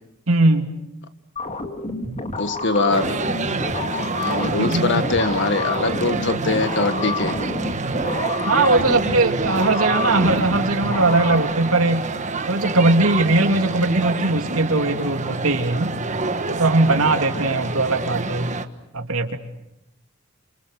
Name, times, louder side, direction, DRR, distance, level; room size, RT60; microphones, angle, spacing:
voice 1, 0.3-0.7 4.6-5.0 8.5-12.1 12.5-15.9 16.5-18.5 18.9-19.4, right 2 dB, 85° right, 5 dB, 2.7 m, -20 dB
sound 1, 1.4-11.4, left 2 dB, 35° left, 2.2 m, -29 dB
voice 2, 2.4-3.2 4.2-7.4, left 3 dB, 60° left, 10 dB, 1.7 m, -22 dB
sound 2, 2.9-18.7, right 3 dB, 35° right, 1.4 m, -27 dB
30.0 x 27.5 x 6.6 m, 0.84 s
head